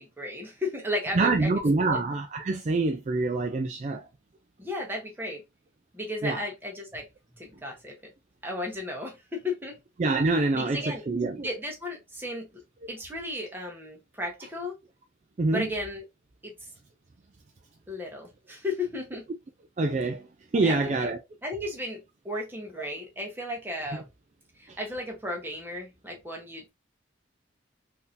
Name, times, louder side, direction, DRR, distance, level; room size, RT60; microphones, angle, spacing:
voice 1, 0.0-1.5 1.8-2.0 4.6-5.4 5.9-7.1 7.4-8.1 8.4-9.8 10.5-11.0 11.4-12.6 12.9-14.8 15.5-16.0 16.4-16.7 17.9-19.3 20.5-21.1 21.4-24.1 24.6-26.7, left 1 dB, 10° right, 1.0 m, -34 dB
voice 2, 1.1-4.1 6.2-6.4 10.0-11.5 15.4-15.7 19.8-20.3 20.5-21.2 24.7-24.8, right 3 dB, 35° right, 0.3 m, -26 dB
3.8 x 2.7 x 2.6 m
head